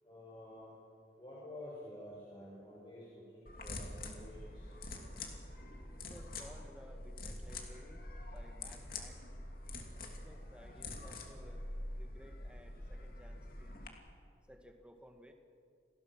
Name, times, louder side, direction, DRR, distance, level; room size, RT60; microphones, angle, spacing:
voice 1, 0.0-0.7 1.2-4.7, left 1 dB, 25° left, -7 dB, 6.1 m, -50 dB
sound 1, 3.5-13.9, left 2 dB, 50° left, 2.8 m, -46 dB
voice 2, 5.9-9.2 10.0-11.7 11.9-14.0 14.5-15.3, equal, 5° right, 4 dB, 1.8 m, -58 dB
29.0 x 19.5 x 6.2 m, 2.3 s
head